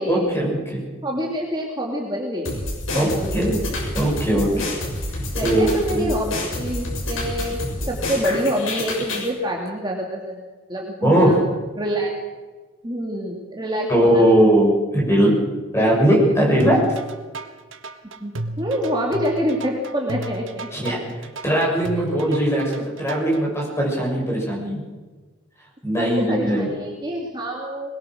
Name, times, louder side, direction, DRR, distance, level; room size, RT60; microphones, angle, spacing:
voice 1, 0.1-0.9 2.9-3.1 3.3-3.6 3.9-4.5 5.4-6.0 11.0-11.5 13.9-15.3 15.7-16.8 20.7-22.6 23.0-24.9 25.8-26.7, right 1 dB, 15° left, -2 dB, 7.2 m, -19 dB
voice 2, 1.0-3.4 3.7-3.9 4.3-4.6 5.0-7.6 7.9-11.4 11.8-12.1 12.8-14.3 18.2-21.1 22.0-22.4 26.0-27.9, equal, 20° right, -1 dB, 2.6 m, -27 dB
sound 1, 2.4-9.3, left 1 dB, 75° left, 6.9 m, -28 dB
sound 2, 16.6-23.4, right 2 dB, 70° right, 1.5 m, -33 dB
21.5 x 21.0 x 6.4 m, 1.3 s
head